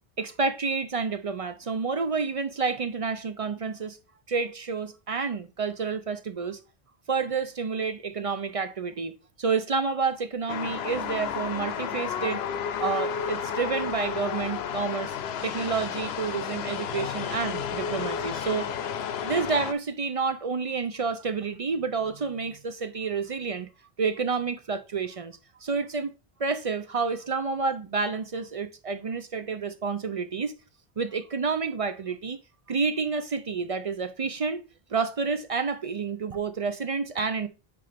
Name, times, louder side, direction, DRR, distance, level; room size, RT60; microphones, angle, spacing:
voice 1, 0.2-4.0 4.3-6.6 7.1-12.4 12.8-15.2 15.4-18.7 19.2-23.7 24.0-26.1 26.4-30.6 31.0-32.4 32.7-34.6 34.9-37.5, right 5 dB, 50° right, 0.5 m, -29 dB
sound 1, 10.5-19.7, left 7 dB, 90° left, 0.9 m, -32 dB
9.5 x 4.1 x 3.4 m
omnidirectional pair, 1.0 m